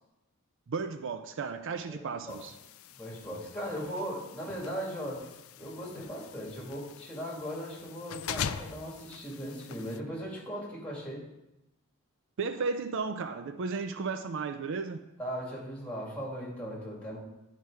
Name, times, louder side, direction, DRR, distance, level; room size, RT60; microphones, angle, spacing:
voice 1, 0.7-2.5 12.4-15.0, right 4 dB, 60° right, 9 dB, 0.4 m, -34 dB
sound 1, 2.3-10.0, left 8 dB, 65° left, 0.4 m, -43 dB
voice 2, 3.0-5.2 5.6-11.2 15.2-17.2, equal, 5° left, -5 dB, 2.2 m, -38 dB
11.0 x 4.6 x 4.7 m, 0.94 s
head